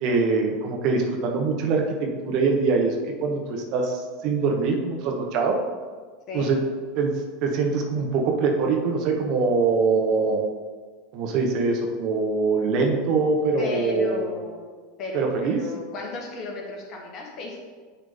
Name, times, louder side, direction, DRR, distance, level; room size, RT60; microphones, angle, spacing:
voice 1, 0.0-5.6 6.3-6.6 6.9-7.1 7.4-10.4 11.1-14.3 15.1-15.6, right 4 dB, 50° right, 1 dB, 1.2 m, -23 dB
voice 2, 13.6-14.6 15.0-17.6, left 3 dB, 45° left, 0 dB, 1.6 m, -34 dB
9.5 x 3.7 x 3.6 m, 1.5 s
hypercardioid pair, 85°, 0 cm